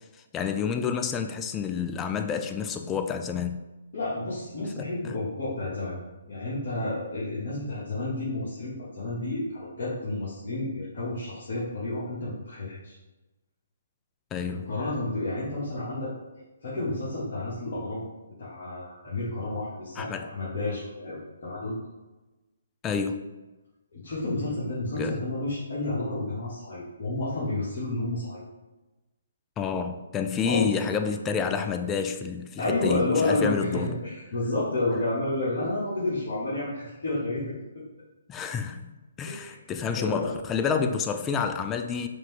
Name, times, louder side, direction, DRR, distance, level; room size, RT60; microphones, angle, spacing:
voice 1, 0.3-3.6 5.0-5.1 14.3-14.7 20.0-20.3 22.8-23.2 25.0-25.2 29.6-33.9 38.3-38.9 39.2-42.1, left 6 dB, 15° left, 0.3 m, -29 dB
voice 2, 3.9-5.9 6.3-12.9 14.5-16.1 16.6-18.0 18.4-21.7 23.9-28.4 30.4-30.7 32.6-37.5 39.2-39.6 40.0-40.4, left 2 dB, 50° left, 1.4 m, -30 dB
5.0 x 2.8 x 3.3 m
figure-of-eight pair, 135°, 0 cm